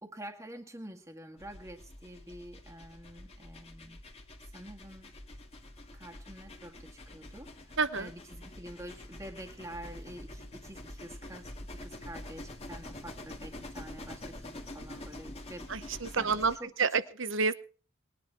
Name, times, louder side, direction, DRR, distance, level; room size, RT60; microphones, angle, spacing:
voice 1, 0.0-4.0 4.5-5.1 5.9-15.7 16.2-16.3 16.6-17.0, right 1 dB, 15° right, 2 dB, 1.9 m, -47 dB
sound 1, 1.4-16.6, left 1 dB, 30° left, 1.7 m, -46 dB
voice 2, 7.8-8.1 15.7-17.5, right 5 dB, 60° right, 14 dB, 0.9 m, -29 dB
21.0 x 10.0 x 4.6 m, 0.39 s
head